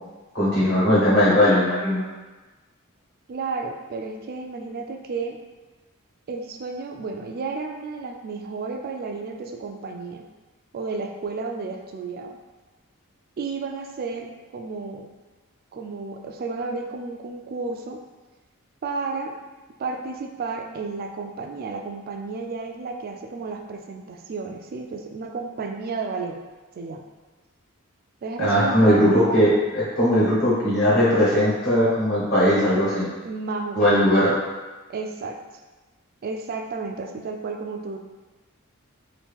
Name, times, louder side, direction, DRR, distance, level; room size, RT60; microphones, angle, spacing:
voice 1, 0.3-2.0 28.4-33.1 33.7-34.3, equal, 50° left, -8 dB, 1.3 m, -19 dB
voice 2, 3.3-5.4 6.3-10.2 10.7-12.4 13.4-15.1 15.7-18.0 18.8-19.3 19.8-26.4 26.7-27.0 28.2-29.0 33.2-33.9 34.9-35.4 36.2-38.0, right 4 dB, 45° right, 4 dB, 0.3 m, -32 dB
2.9 x 2.6 x 3.5 m, 1.2 s
head